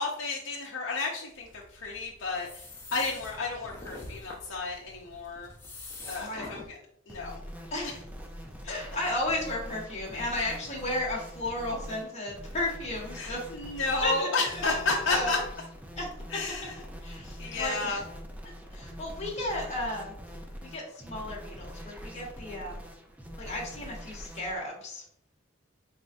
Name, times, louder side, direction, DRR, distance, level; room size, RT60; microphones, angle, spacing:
voice 1, 0.0-2.6 2.9-5.5 6.1-6.8 7.1-7.4 13.2-15.4 16.3-16.8 17.4-18.0, left 3 dB, 75° left, -3 dB, 0.6 m, -32 dB
sound 1, 1.3-6.7, left 2 dB, 10° left, 0.8 m, -46 dB
voice 2, 6.1-6.5 7.7-7.9 8.6-13.4 14.0-14.3 14.7-14.8 15.1-15.4 16.0-16.1 17.0-18.0 18.7-20.1 20.6-22.8 23.4-25.0, left 1 dB, 35° left, -2 dB, 1.1 m, -34 dB
sound 2, 7.1-24.6, equal, 10° right, 0.5 m, -44 dB
4.3 x 3.5 x 2.5 m, 0.70 s
head